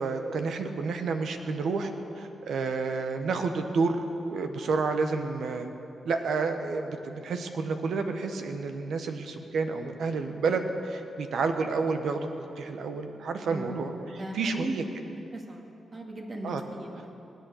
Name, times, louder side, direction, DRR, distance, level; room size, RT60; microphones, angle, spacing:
voice 1, 0.0-4.0 4.3-5.7 6.0-12.3 12.6-13.9 14.3-14.8 16.4-16.6, right 4 dB, 80° right, 6 dB, 1.2 m, -30 dB
voice 2, 13.5-14.8 15.3-17.1, right 1 dB, 45° right, 0 dB, 2.2 m, -38 dB
20.0 x 8.5 x 7.9 m, 2.9 s
cardioid pair, 65°, 0 cm